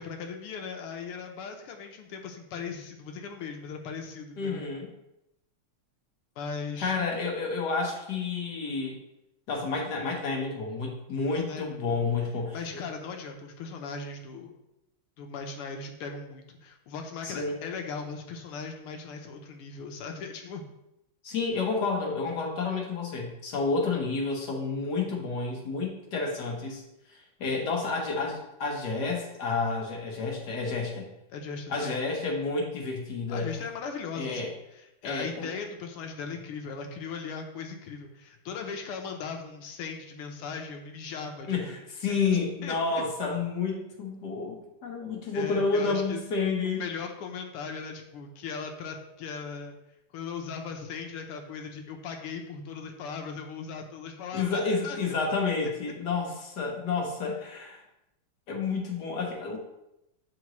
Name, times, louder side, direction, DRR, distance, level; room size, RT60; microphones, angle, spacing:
voice 1, 0.0-4.7 6.4-6.9 11.3-12.0 12.5-14.5 15.2-20.6 27.4-27.6 31.3-32.0 33.3-41.8 42.1-42.2 42.6-43.0 45.3-46.2 46.6-49.8 50.1-55.0, left 5 dB, 85° left, 3 dB, 1.7 m, -38 dB
voice 2, 4.4-4.9 6.8-9.0 9.5-12.8 17.2-17.6 21.2-26.8 27.4-31.1 31.7-33.5 34.1-34.5 35.0-35.5 41.5-46.8 54.3-57.8 58.5-59.6, left 4 dB, 55° left, 0 dB, 1.5 m, -30 dB
8.6 x 3.9 x 3.0 m, 0.87 s
omnidirectional pair, 2.4 m